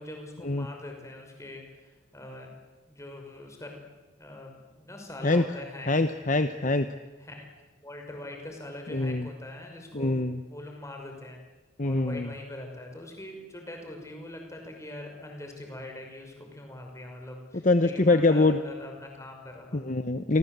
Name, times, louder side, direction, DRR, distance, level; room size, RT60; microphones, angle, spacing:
voice 1, 0.0-2.5 2.9-3.8 4.2-6.0 7.2-7.5 7.8-10.1 10.5-11.4 11.8-19.8, left 1 dB, 15° left, 2 dB, 5.9 m, -42 dB
voice 2, 5.9-6.9 8.9-9.3 9.9-10.4 11.8-12.3 17.6-18.6 19.7-20.4, left 2 dB, 40° left, 9 dB, 1.0 m, -24 dB
29.0 x 24.5 x 8.2 m, 1.2 s
head